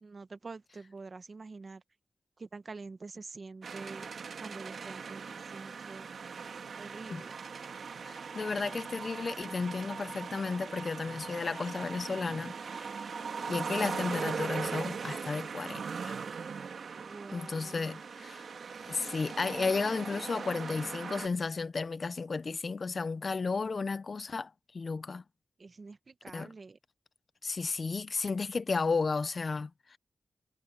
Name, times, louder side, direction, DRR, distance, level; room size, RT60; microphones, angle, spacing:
voice 1, 0.0-1.8 2.4-4.1 4.4-6.1 6.8-7.4 17.0-18.0 25.6-26.8, right 4 dB, 45° right, 1.2 m, -46 dB
sound 1, 3.6-21.3, right 5 dB, 75° right, 2.3 m, -40 dB
voice 2, 8.0-13.1 13.5-16.2 17.3-18.4 18.8-25.2 26.3-26.5 27.4-30.0, left 4 dB, 50° left, 0.6 m, -33 dB
wide cardioid pair, 100°, 0 cm